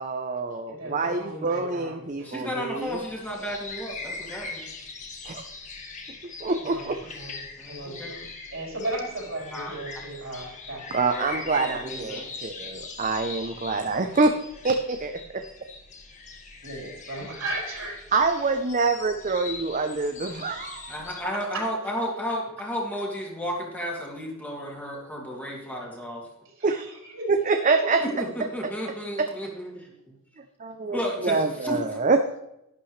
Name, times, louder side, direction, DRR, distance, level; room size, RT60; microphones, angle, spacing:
voice 1, 0.0-3.0 5.3-5.4 6.4-7.0 10.9-14.3 14.6-15.4 18.1-20.9 26.6-26.8 27.3-28.0 29.2-29.3 30.6-32.4, right 3 dB, 35° right, 6 dB, 0.6 m, -26 dB
voice 2, 0.7-2.7 6.7-7.4 7.7-8.2 8.5-11.1 12.2-12.3 16.6-18.1 20.9-21.0 21.5-21.7 26.6-27.3, right 1 dB, 65° right, -2 dB, 4.1 m, -36 dB
voice 3, 2.2-4.7 7.6-8.2 9.5-9.7 11.1-11.3 11.5-12.5 20.9-26.2 28.0-30.2 30.9-32.0, equal, 10° left, -3 dB, 2.4 m, -33 dB
sound 1, 2.8-21.2, left 4 dB, 35° left, 1.6 m, -41 dB
11.5 x 11.5 x 3.2 m, 0.85 s
head